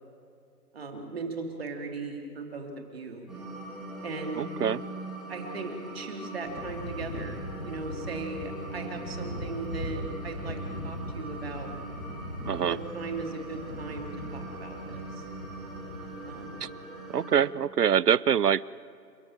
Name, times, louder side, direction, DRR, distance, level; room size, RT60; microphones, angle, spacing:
voice 1, 0.7-3.3 4.0-4.5 5.3-10.6 10.8-11.7 12.5-15.2 16.3-16.6, right 3 dB, 35° right, 3 dB, 2.9 m, -38 dB
sound 1, 3.3-17.3, right 1 dB, ahead, 2.2 m, -42 dB
voice 2, 4.4-4.8 12.4-12.8 16.6-16.7 17.1-18.7, right 8 dB, 65° right, 22 dB, 0.6 m, -24 dB
sound 2, 6.4-16.6, left 1 dB, 80° left, 6.5 m, -40 dB
29.5 x 12.5 x 9.0 m, 2.3 s
figure-of-eight pair, 160°, 50 cm